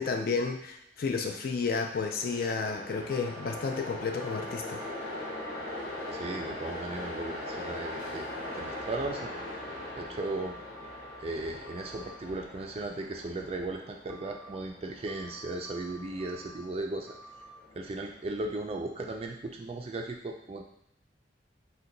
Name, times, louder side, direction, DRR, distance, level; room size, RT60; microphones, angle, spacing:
voice 1, 0.0-4.8, left 4 dB, 50° left, 4 dB, 0.3 m, -31 dB
Train, 1.2-18.4, left 1 dB, 65° left, 0.9 m, -41 dB
sound 1, 3.1-3.6 4.2-5.6 5.9-6.4 8.4-9.0 9.6-11.2 11.7-12.1 14.1-14.6 15.1-16.6 17.1-17.5, right 2 dB, ahead, 0.8 m, -50 dB
voice 2, 6.1-8.3 8.5-9.3 10.0-10.6 11.2-17.1 17.8-20.6, right 2 dB, 30° right, 2 dB, 0.3 m, -36 dB
2.8 x 2.2 x 3.7 m, 0.74 s
head